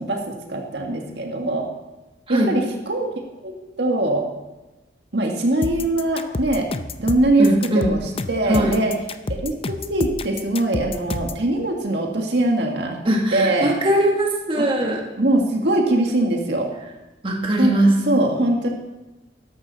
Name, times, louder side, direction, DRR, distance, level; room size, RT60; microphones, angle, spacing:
voice 1, 0.0-1.7 2.3-3.1 3.4-4.3 5.1-6.7 7.0-8.9 9.3-9.5 9.9-13.0 13.3-13.7 14.6-14.7 15.2-16.7 17.6-17.7 18.1-18.7, right 1 dB, 70° right, 1 dB, 1.8 m, -22 dB
sound 1, 5.6-11.4, left 3 dB, 35° left, 0.5 m, -29 dB
voice 2, 7.4-7.9 8.4-8.8 13.0-15.0 17.2-18.0, right 1 dB, 30° right, 0 dB, 1.8 m, -20 dB
13.0 x 11.5 x 4.1 m, 1.1 s
head